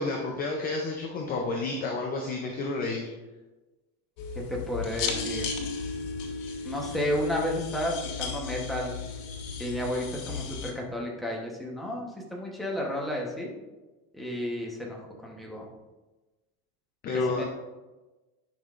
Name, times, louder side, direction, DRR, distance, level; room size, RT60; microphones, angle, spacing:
voice 1, 0.0-3.1 17.0-17.4, left 3 dB, 20° left, 1 dB, 0.4 m, -30 dB
sound 1, 4.2-10.7, left 5 dB, 85° left, 1.5 m, -35 dB
voice 2, 4.5-5.5 6.6-8.9 9.6-13.5 14.1-15.7 17.1-17.4, left 1 dB, ahead, -2 dB, 0.9 m, -32 dB
10.5 x 5.7 x 2.4 m, 1.1 s
supercardioid pair, 155°, 48 cm